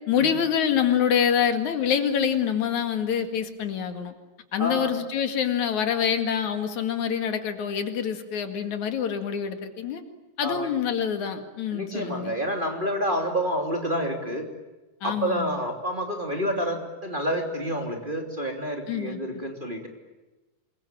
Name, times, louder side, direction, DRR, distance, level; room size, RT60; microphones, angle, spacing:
voice 1, 0.1-4.1 4.5-10.0 10.4-12.4 15.0-15.6 18.9-19.4, left 8 dB, 80° left, 7 dB, 3.4 m, -26 dB
voice 2, 4.6-4.9 10.4-10.7 11.7-14.4 15.0-19.9, equal, 15° right, 2 dB, 3.1 m, -28 dB
27.0 x 22.5 x 9.1 m, 1.1 s
omnidirectional pair, 3.3 m